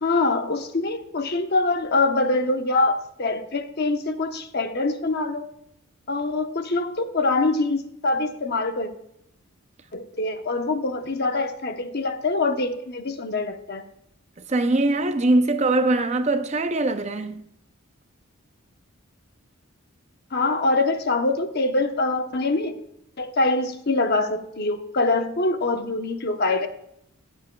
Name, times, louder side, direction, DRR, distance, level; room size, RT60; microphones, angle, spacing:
voice 1, 0.0-5.5 6.1-8.9 9.9-13.8 20.3-22.8 23.2-26.7, left 2 dB, 45° left, 0.9 m, -24 dB
voice 2, 14.5-17.5, right 2 dB, 30° right, 0.5 m, -22 dB
19.5 x 7.3 x 2.3 m
head